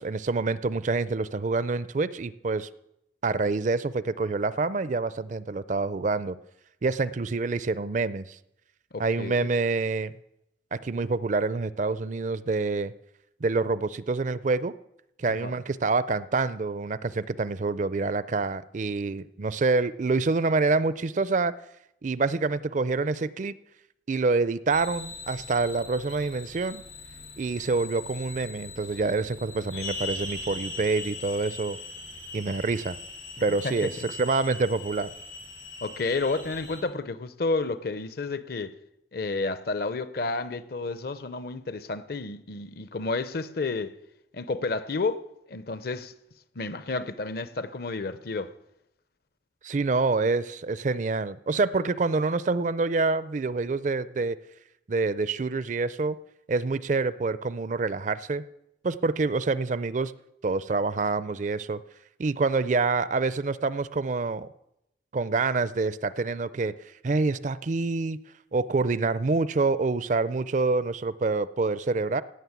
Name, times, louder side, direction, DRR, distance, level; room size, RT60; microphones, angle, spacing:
voice 1, 0.0-2.7 3.2-6.4 6.8-8.4 9.0-10.1 10.7-12.9 13.4-14.7 15.2-21.5 22.0-23.6 24.1-26.8 27.4-31.8 32.3-33.0 33.4-35.1 49.6-54.4 54.9-56.2 56.5-58.4 58.8-60.1 60.4-61.8 62.2-64.5 65.1-66.7 67.0-68.2 68.5-72.2, right 3 dB, 40° right, 0.4 m, -27 dB
voice 2, 8.9-9.5 15.4-15.5 33.6-33.9 35.8-38.8 39.1-43.9 44.3-46.2 46.6-48.5, left 3 dB, 50° left, 0.7 m, -31 dB
sound 1, 24.7-36.8, left 3 dB, 85° left, 6.9 m, -40 dB
16.0 x 6.4 x 9.5 m
head